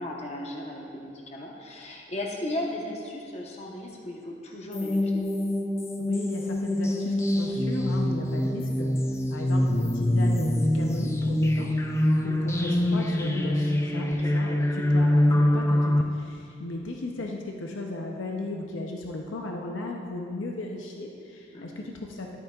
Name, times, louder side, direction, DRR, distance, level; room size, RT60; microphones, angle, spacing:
voice 1, 0.0-5.3 14.0-14.4 21.5-21.8, left 1 dB, 35° left, -1 dB, 1.0 m, -36 dB
sound 1, 4.7-16.0, left 1 dB, 15° left, 0.3 m, -24 dB
voice 2, 6.0-9.0 9.3-11.7 12.2-14.1 14.3-22.4, left 2 dB, 80° left, 1 dB, 0.7 m, -36 dB
13.0 x 8.5 x 2.4 m, 2.4 s
head